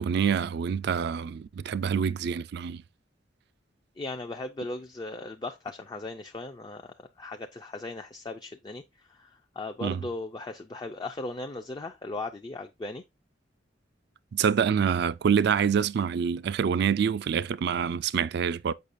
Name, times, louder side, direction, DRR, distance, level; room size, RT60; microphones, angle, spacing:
voice 1, 0.0-2.8 9.8-10.0 14.3-18.7, right 7 dB, 60° right, 0.3 m, -26 dB
voice 2, 4.0-13.0, left 2 dB, 25° left, 0.4 m, -38 dB
6.7 x 5.5 x 2.5 m
head